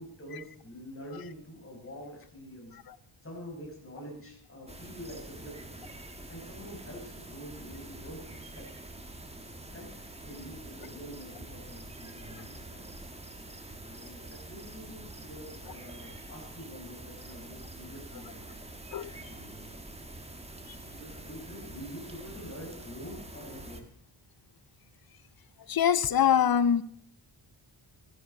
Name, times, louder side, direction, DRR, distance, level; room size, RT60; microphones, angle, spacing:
voice 1, 0.0-2.8 3.2-5.6 6.3-8.3 8.6-8.7 9.7-9.9 10.2-13.2 13.9-18.5 19.2-19.7 20.9-23.8, equal, 25° left, 5.5 m, -46 dB
sound 1, 4.7-23.8, right 2 dB, 15° right, 1.5 m, -46 dB
voice 2, 25.7-26.8, left 9 dB, 50° left, 0.7 m, -24 dB
15.5 x 13.0 x 5.3 m
wide cardioid pair, 140°, 48 cm